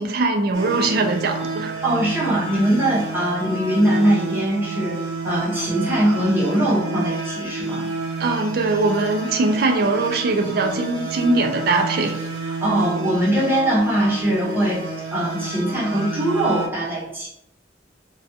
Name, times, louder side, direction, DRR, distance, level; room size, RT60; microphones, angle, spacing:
voice 1, 0.0-1.7 8.2-12.2, right 3 dB, 60° right, 3 dB, 0.4 m, -21 dB
sound 1, 0.5-16.7, right 3 dB, 80° right, 0.8 m, -30 dB
voice 2, 1.8-7.9 12.6-14.8 15.1-17.3, right 1 dB, 10° right, -6 dB, 0.7 m, -21 dB
2.4 x 2.2 x 2.6 m, 0.78 s
head